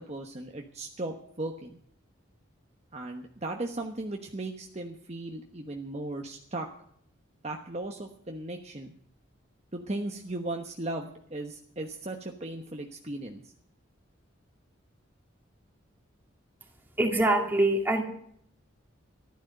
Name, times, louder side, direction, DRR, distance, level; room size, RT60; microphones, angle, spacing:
voice 1, 0.0-1.8 2.9-6.7 7.4-8.9 9.7-13.4, right 2 dB, 35° right, 2 dB, 1.1 m, -37 dB
voice 2, 17.0-18.0, right 1 dB, 10° right, 1 dB, 2.4 m, -24 dB
14.5 x 12.0 x 6.7 m, 0.65 s
head